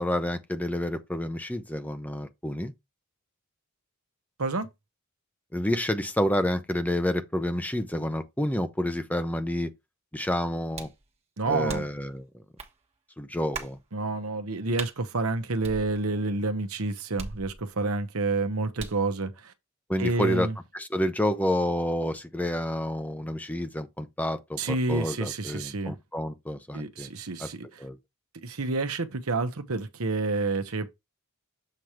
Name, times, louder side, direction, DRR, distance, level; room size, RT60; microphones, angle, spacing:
voice 1, 0.0-2.7 5.5-9.7 10.1-10.9 11.5-12.2 13.2-13.8 19.9-20.5 20.7-27.1 27.4-27.5 27.8-28.0, left 1 dB, 5° left, 0.7 m, -29 dB
sound 1, 10.8-11.0 11.7-12.1 12.6-12.7 13.5-13.8 14.8-15.0 15.6-16.3 17.2-17.9 18.8-19.1, right 4 dB, 30° right, 1.2 m, -39 dB
voice 2, 11.4-11.9 13.9-19.5 20.0-20.5 24.6-25.9 26.7-27.8 28.4-30.9, right 3 dB, 80° right, 1.0 m, -29 dB
7.7 x 3.0 x 4.9 m
head